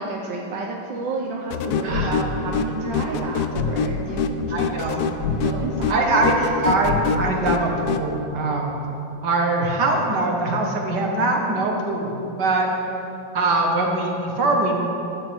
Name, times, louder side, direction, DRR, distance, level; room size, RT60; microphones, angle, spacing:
voice 1, 0.0-4.8 5.4-6.5, right 3 dB, 80° right, -1 dB, 1.6 m, -30 dB
sound 1, 1.5-8.1, left 5 dB, 70° left, 1.0 m, -25 dB
voice 2, 1.8-2.1 3.1-3.3 4.5-5.1 5.9-6.3 6.6-8.7 9.2-12.7 13.3-14.8, right 2 dB, 65° right, 0 dB, 2.1 m, -22 dB
15.0 x 12.0 x 3.5 m, 2.8 s
omnidirectional pair, 2.0 m